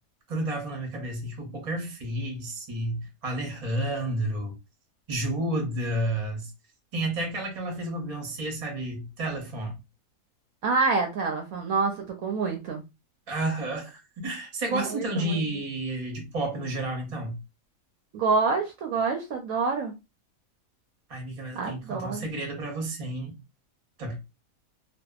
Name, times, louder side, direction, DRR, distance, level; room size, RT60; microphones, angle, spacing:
voice 1, 0.3-4.5 5.1-6.5 6.9-9.8 13.3-17.4 21.1-23.4 24.0-24.2, right 1 dB, 35° right, 0.6 m, -31 dB
voice 2, 10.6-12.8 14.7-15.4 18.1-20.0 21.5-22.3, right 4 dB, 70° right, 0.9 m, -27 dB
2.6 x 2.2 x 2.3 m
omnidirectional pair, 1.7 m